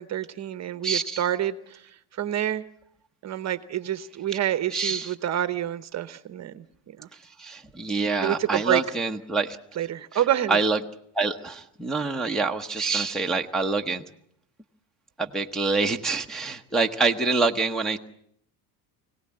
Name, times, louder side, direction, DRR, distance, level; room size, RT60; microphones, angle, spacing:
voice 1, 0.0-1.8 2.2-2.6 3.2-6.6 7.0-7.1 8.2-8.8 9.8-10.6, right 11 dB, 35° right, 13 dB, 1.0 m, -27 dB
voice 2, 0.8-1.2 4.7-5.1 7.4-9.6 10.5-10.8 11.1-14.0 15.2-18.0, right 3 dB, ahead, 0 dB, 0.9 m, -26 dB
25.0 x 18.0 x 8.8 m, 0.71 s
cardioid pair, 145°, 48 cm